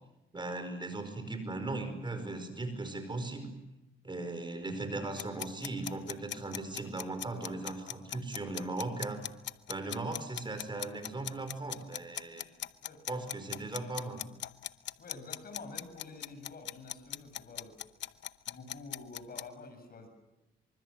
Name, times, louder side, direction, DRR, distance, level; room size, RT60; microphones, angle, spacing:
voice 1, 0.3-3.5 4.0-9.2 9.7-12.5 13.1-14.2, right 2 dB, 25° right, 8 dB, 5.1 m, -38 dB
sound 1, 5.2-19.5, left 11 dB, 65° left, 0.8 m, -39 dB
voice 2, 15.0-17.8 18.5-20.1, left 3 dB, 50° left, 7 dB, 7.4 m, -48 dB
25.0 x 25.0 x 7.7 m, 0.97 s
cardioid pair, 90°, 20 cm